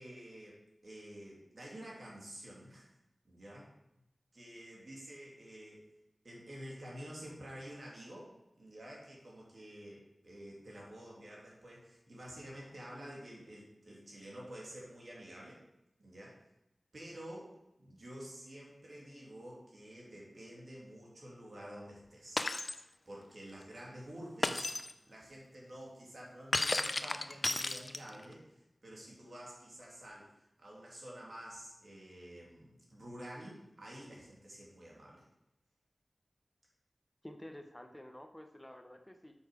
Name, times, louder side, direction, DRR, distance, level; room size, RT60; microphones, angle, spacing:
voice 1, 0.0-3.0 3.2-3.7 4.3-5.9 6.2-15.6 16.0-16.4 16.9-24.7 25.1-35.3, equal, 70° right, -3 dB, 2.6 m, -50 dB
Shatter, 22.4-22.8 24.4-24.9 26.5-28.2, left 2 dB, 50° left, 0.5 m, -33 dB
voice 2, 37.2-39.3, left 1 dB, 15° left, 6 dB, 0.7 m, -50 dB
7.0 x 6.0 x 4.8 m, 0.87 s
wide cardioid pair, 60°, 0 cm